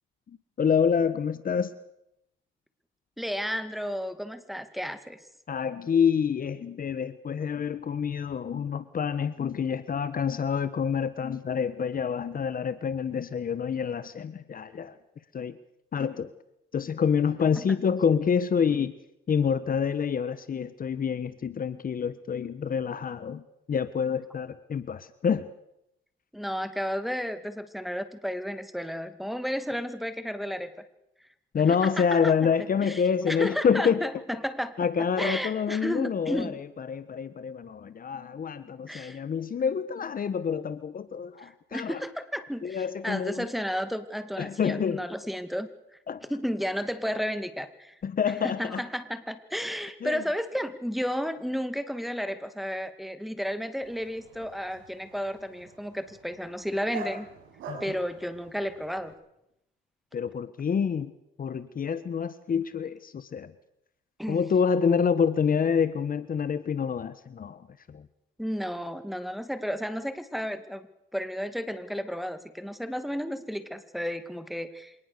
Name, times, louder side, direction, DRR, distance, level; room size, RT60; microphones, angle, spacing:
voice 1, 0.3-1.7 5.5-15.0 15.3-15.6 15.9-16.3 16.7-18.9 19.3-23.4 23.7-25.5 31.5-34.0 34.8-42.0 42.6-43.5 44.4-45.0 46.1-46.2 48.0-48.8 50.0-50.2 57.7-58.0 60.1-61.1 61.4-63.5 64.3-68.1, left 6 dB, 45° left, 14 dB, 1.3 m, -27 dB
voice 2, 3.2-5.2 17.6-17.7 26.3-30.7 31.7-32.3 32.8-34.7 35.2-36.6 38.9-39.2 41.4-45.7 46.3-48.0 48.3-57.3 57.8-59.1 64.2-64.4 68.4-70.9 71.1-74.9, equal, ahead, 9 dB, 2.3 m, -33 dB
Dog, 53.8-59.1, right 4 dB, 85° right, 6.2 m, -45 dB
26.0 x 19.0 x 6.8 m, 0.82 s
cardioid pair, 90°, 20 cm